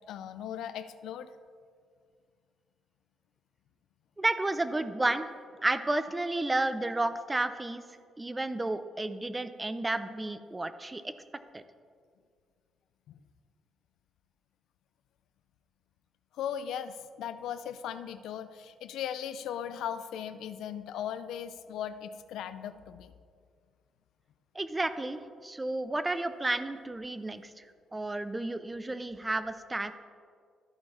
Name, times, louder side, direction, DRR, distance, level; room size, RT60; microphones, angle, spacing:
voice 1, 0.1-1.3 13.1-13.2 16.3-23.1, left 9 dB, 85° left, 12 dB, 0.4 m, -38 dB
voice 2, 4.2-5.2 5.6-7.8 8.2-11.1 11.5-11.6 24.5-27.6 27.9-30.0, right 2 dB, 15° right, 11 dB, 0.5 m, -31 dB
13.5 x 4.7 x 4.2 m, 2.1 s
cardioid pair, 90°, 0 cm